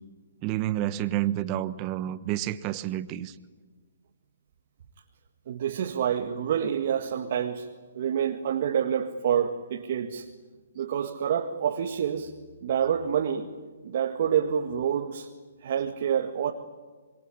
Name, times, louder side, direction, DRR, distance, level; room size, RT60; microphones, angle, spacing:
voice 1, 0.4-3.3, right 13 dB, 30° right, 14 dB, 1.2 m, -29 dB
voice 2, 5.5-7.7 7.9-10.3 10.8-12.3 12.6-13.5 13.8-15.3 15.6-16.5, right 8 dB, 50° right, 3 dB, 1.9 m, -27 dB
26.5 x 22.5 x 10.0 m, 1.4 s
hypercardioid pair, 135°, 0 cm